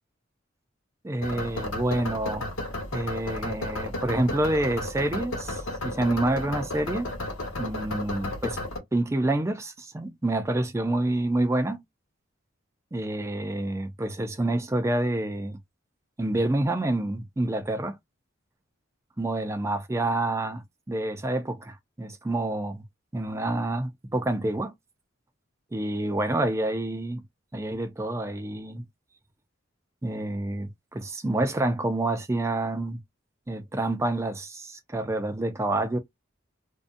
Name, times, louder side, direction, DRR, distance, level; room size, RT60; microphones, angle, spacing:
voice 1, 1.0-2.5 2.9-7.1 7.6-8.6 8.9-11.8 12.9-15.6 16.2-18.0 19.2-22.8 23.1-24.7 25.7-27.2 27.5-28.9 30.0-33.0 33.5-36.0, right 1 dB, 15° right, 0.4 m, -28 dB
sound 1, 1.2-8.8, left 1 dB, 85° left, 1.0 m, -33 dB
2.6 x 2.3 x 2.4 m
head